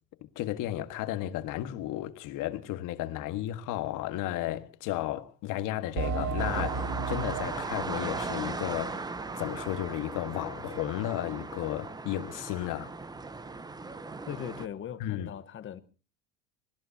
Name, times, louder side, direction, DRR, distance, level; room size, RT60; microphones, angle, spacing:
voice 1, 0.2-12.9 15.0-15.3, left 14 dB, 55° left, 1.7 m, -34 dB
sound 1, 6.0-10.2 10.6-10.7 11.2-11.3, right 5 dB, 70° right, 3.6 m, -36 dB
sound 2, 6.4-14.7, right 3 dB, 10° right, 0.9 m, -38 dB
voice 2, 14.3-15.8, left 9 dB, 35° left, 1.2 m, -39 dB
25.0 x 20.0 x 2.8 m
supercardioid pair, 125°, 37 cm